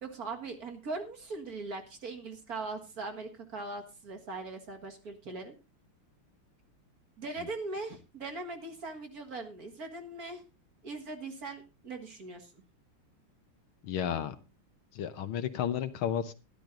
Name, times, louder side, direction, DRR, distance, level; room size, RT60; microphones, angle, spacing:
voice 1, 0.0-5.5 7.2-10.4 10.8-12.5, right 3 dB, 45° right, 4 dB, 2.0 m, -40 dB
voice 2, 13.8-14.4 14.9-16.3, left 9 dB, 70° left, 10 dB, 1.8 m, -32 dB
12.0 x 12.0 x 3.8 m, 0.28 s
omnidirectional pair, 2.4 m